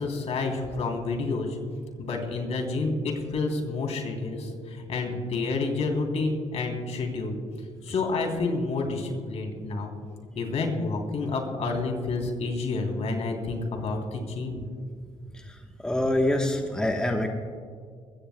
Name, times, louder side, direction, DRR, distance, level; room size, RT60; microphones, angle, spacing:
voice 1, 0.0-1.6 2.0-7.4 7.8-9.9 10.3-14.6, left 3 dB, 60° left, 1 dB, 3.2 m, -29 dB
voice 2, 15.3-17.3, left 1 dB, 5° left, 2 dB, 1.2 m, -26 dB
23.0 x 16.5 x 2.2 m, 2.1 s
cardioid pair, 90°, 12 cm